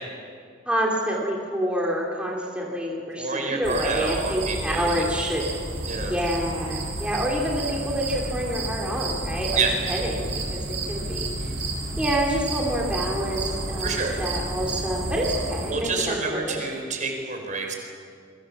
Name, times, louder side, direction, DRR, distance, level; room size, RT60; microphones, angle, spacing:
voice 1, 0.6-5.5 6.1-9.6 9.9-10.6 10.9-11.5 12.0-16.2 16.4-16.6, equal, 5° right, -3 dB, 3.4 m, -27 dB
voice 2, 3.2-5.0 5.8-6.1 9.5-9.7 13.8-14.2 15.7-17.7, right 4 dB, 40° right, 3 dB, 5.0 m, -28 dB
sound 1, 3.6-15.7, right 2 dB, 65° right, 7.2 m, -31 dB
28.0 x 23.5 x 7.4 m, 2.2 s
head